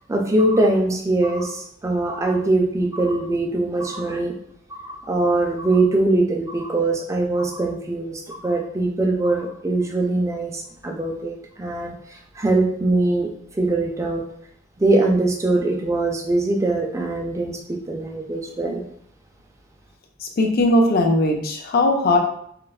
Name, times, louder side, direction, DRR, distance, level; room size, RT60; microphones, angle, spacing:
voice 1, 0.1-4.4 4.7-11.9 12.4-14.2 14.8-18.8, right 2 dB, 15° right, 1 dB, 0.3 m, -22 dB
voice 2, 20.2-22.2, left 1 dB, 50° left, 2 dB, 0.4 m, -19 dB
3.1 x 2.0 x 2.3 m, 0.67 s
head